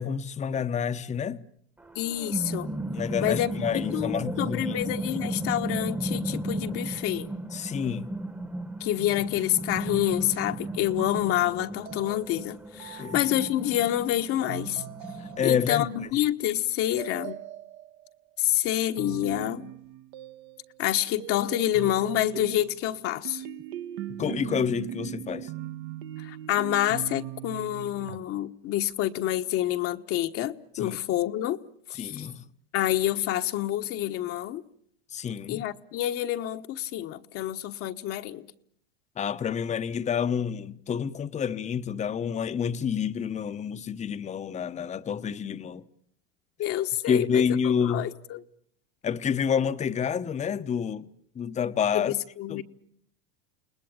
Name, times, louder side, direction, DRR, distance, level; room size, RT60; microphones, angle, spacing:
voice 1, 0.0-1.4 2.9-4.8 7.5-8.1 13.0-13.2 15.4-16.1 24.1-25.5 30.7-31.0 32.0-32.4 35.1-35.6 39.2-45.8 47.0-48.1 49.0-51.1 51.3-52.1 52.5-52.6, left 7 dB, 25° left, 1.0 m, -28 dB
sound 1, 1.8-16.1, right 1 dB, 5° right, 1.3 m, -35 dB
voice 2, 1.9-2.7 3.2-7.3 8.8-14.8 15.4-17.4 18.4-19.7 20.8-23.4 26.2-31.6 31.9-32.3 32.7-34.6 35.5-38.5 46.6-47.4 47.8-48.4 51.9-52.6, left 13 dB, 50° left, 1.3 m, -28 dB
sound 2, 9.9-13.8 14.5-15.9 17.0-18.1 19.0-20.9 21.2-28.2, right 13 dB, 65° right, 1.6 m, -40 dB
29.5 x 19.5 x 8.9 m
supercardioid pair, 110°, 30 cm